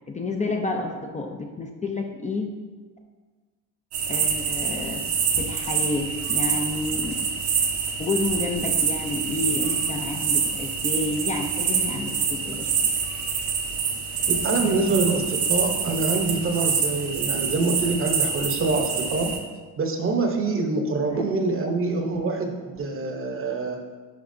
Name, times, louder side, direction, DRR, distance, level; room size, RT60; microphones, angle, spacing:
voice 1, 0.1-2.5 4.1-5.0 5.4-7.3 8.0-12.9 21.1-21.2 21.6-21.7, left 2 dB, 20° left, 1 dB, 0.5 m, -30 dB
sound 1, 3.9-19.4, right 6 dB, 80° right, 1.1 m, -26 dB
voice 2, 14.3-19.3 19.8-23.8, right 3 dB, 35° right, 4 dB, 0.9 m, -25 dB
10.5 x 4.7 x 2.7 m, 1.4 s
cardioid pair, 120°, 39 cm